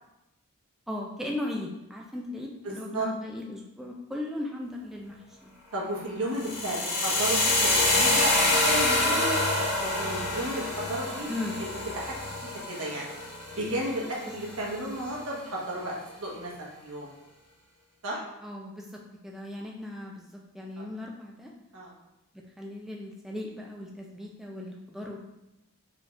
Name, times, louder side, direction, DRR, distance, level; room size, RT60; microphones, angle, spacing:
voice 1, 0.9-5.2 5.4-5.5 11.3-11.6 18.4-21.5 22.6-25.3, left 1 dB, ahead, -1 dB, 0.3 m, -37 dB
voice 2, 2.6-3.1 5.7-11.3 11.6-12.2 12.4-13.1 13.5-17.1 18.0-18.2 20.8-20.9 21.7-21.9, right 1 dB, 75° right, -3 dB, 1.2 m, -33 dB
sound 1, 6.3-14.4, left 2 dB, 85° left, 1.3 m, -26 dB
4.8 x 3.7 x 2.4 m, 0.93 s
head